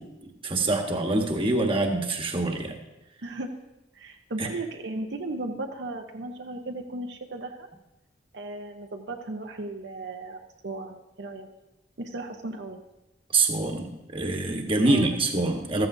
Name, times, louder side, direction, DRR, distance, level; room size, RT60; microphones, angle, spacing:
voice 1, 0.0-2.7 4.4-4.5 13.3-15.9, right 2 dB, 30° right, 3 dB, 1.2 m, -25 dB
voice 2, 3.9-7.7 8.3-11.5 12.0-12.8 14.8-15.1, right 2 dB, 70° right, 3 dB, 0.8 m, -36 dB
14.0 x 14.0 x 2.6 m, 0.96 s
head